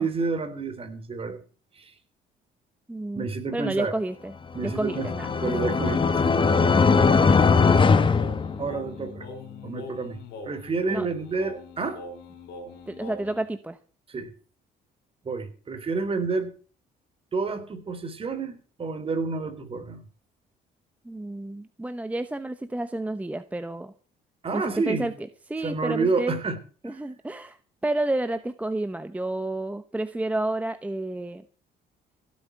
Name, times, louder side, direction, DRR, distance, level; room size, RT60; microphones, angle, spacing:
voice 1, 0.0-1.4 1.7-1.9 3.1-3.9 4.5-5.1 5.4-6.3 8.6-9.3 9.6-12.0 14.1-14.3 15.2-16.5 17.3-20.0 24.4-25.1 25.6-26.6 26.9-27.0, right 4 dB, 35° right, 9 dB, 3.5 m, -29 dB
voice 2, 2.9-3.3 3.5-4.3 4.6-6.3 6.6-6.9 7.2-7.5 10.9-11.1 12.9-13.8 21.0-23.9 24.5-25.1 25.5-26.4 26.8-27.6 27.8-31.4, right 2 dB, 10° right, 10 dB, 0.9 m, -30 dB
sound 1, 4.5-9.1, left 5 dB, 30° left, 1.5 m, -20 dB
Singing, 4.9-13.5, left 3 dB, 85° left, 4.7 m, -42 dB
16.5 x 8.3 x 7.8 m, 0.40 s
cardioid pair, 110°, 17 cm